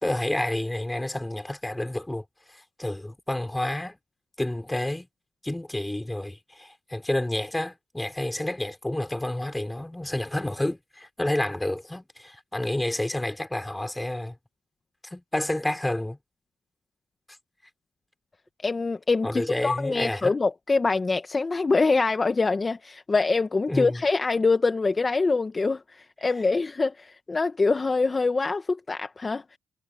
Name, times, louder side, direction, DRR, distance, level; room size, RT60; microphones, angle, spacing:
voice 1, 0.0-4.0 4.4-5.1 5.4-14.4 15.1-16.2 19.2-20.3 23.7-24.0, left 1 dB, 10° left, 5.0 m, -29 dB
voice 2, 18.6-29.6, left 3 dB, 25° left, 1.3 m, -24 dB
cardioid pair, 90°, 0 cm